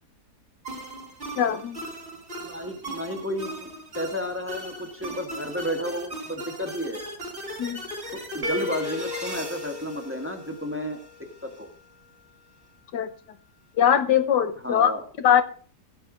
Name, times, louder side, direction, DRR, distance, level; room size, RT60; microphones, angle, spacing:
sound 1, 0.7-11.0, right 1 dB, 40° right, 4.7 m, -38 dB
voice 1, 1.4-1.8 7.6-7.8 12.9-13.1 13.8-14.9 15.2-15.4, left 9 dB, 80° left, 12 dB, 1.6 m, -21 dB
voice 2, 2.4-3.7 3.9-7.0 8.1-11.0 11.4-11.7 14.6-15.0, equal, 10° right, 5 dB, 1.6 m, -32 dB
sound 2, 8.4-11.3, left 3 dB, 65° right, 2.4 m, -35 dB
16.0 x 6.9 x 5.0 m, 0.43 s
omnidirectional pair, 1.8 m